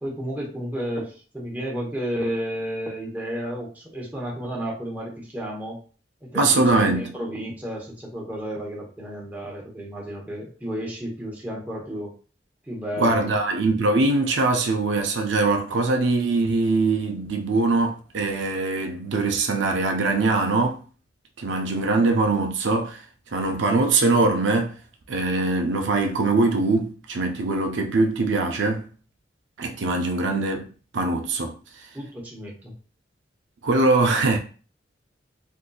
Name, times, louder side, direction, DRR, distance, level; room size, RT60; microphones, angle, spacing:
voice 1, 0.0-5.8 6.2-12.1 12.7-13.4 31.9-32.7, equal, 10° right, 1.0 m, -32 dB
voice 2, 6.3-7.1 13.0-20.8 21.4-23.0 23.3-24.8 25.1-28.9 29.6-30.7 30.9-31.6 33.6-34.4, right 3 dB, 90° right, 0.5 m, -22 dB
3.8 x 2.6 x 2.3 m
head